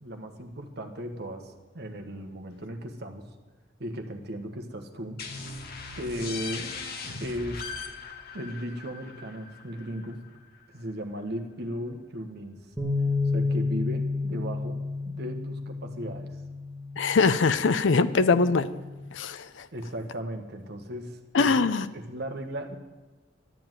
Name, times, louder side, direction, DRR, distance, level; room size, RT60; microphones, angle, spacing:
voice 1, 0.0-3.3 3.8-5.2 5.9-6.7 7.2-7.7 8.3-10.3 10.7-12.6 13.3-16.4 19.7-21.7 21.9-22.8, equal, 60° right, 5 dB, 1.5 m, -36 dB
sound 1, 5.2-10.6, left 4 dB, 55° left, 1.6 m, -39 dB
sound 2, 12.8-19.0, left 3 dB, 10° right, 1.6 m, -31 dB
voice 2, 17.0-18.7 19.1-19.7 21.3-21.9, left 4 dB, 70° left, 13 dB, 0.5 m, -22 dB
12.0 x 8.8 x 9.2 m, 1.2 s
head